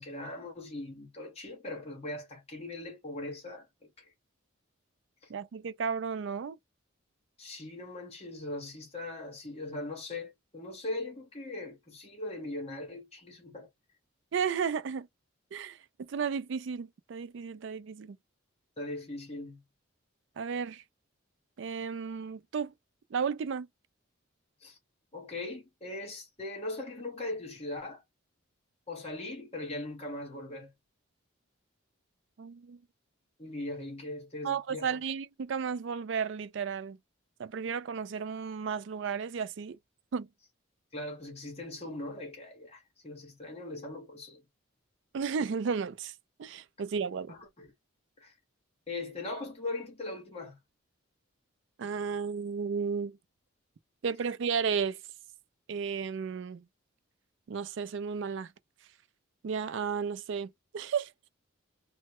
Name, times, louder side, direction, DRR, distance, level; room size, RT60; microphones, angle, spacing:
voice 1, 0.0-4.1 7.4-13.7 18.8-19.6 24.6-24.8 25.1-28.0 28.9-30.7 33.4-35.0 40.9-44.4 47.3-47.7 48.2-48.3 48.9-50.6, left 2 dB, 30° left, 1.0 m, -40 dB
voice 2, 5.3-6.6 14.3-15.1 15.5-18.2 20.4-20.8 21.6-22.7 23.1-23.7 32.4-32.8 34.4-37.0 37.4-39.8 40.1-40.3 45.1-46.1 46.4-47.3 51.8-53.2 54.0-55.0 55.7-56.6 57.5-58.5 59.4-61.1, right 6 dB, 60° right, 0.3 m, -33 dB
3.1 x 2.1 x 2.9 m
head